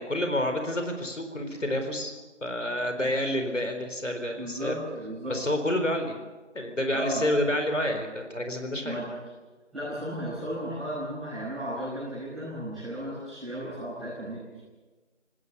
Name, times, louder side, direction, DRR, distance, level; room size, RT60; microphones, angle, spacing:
voice 1, 0.0-2.1 2.4-4.7 5.3-6.2 6.5-9.0, left 1 dB, 75° left, 6 dB, 4.3 m, -29 dB
voice 2, 4.3-5.3 6.9-7.2 8.8-9.0 9.7-14.6, equal, ahead, -20 dB, 5.5 m, -34 dB
25.0 x 19.5 x 7.0 m, 1.3 s
figure-of-eight pair, 175°, 36 cm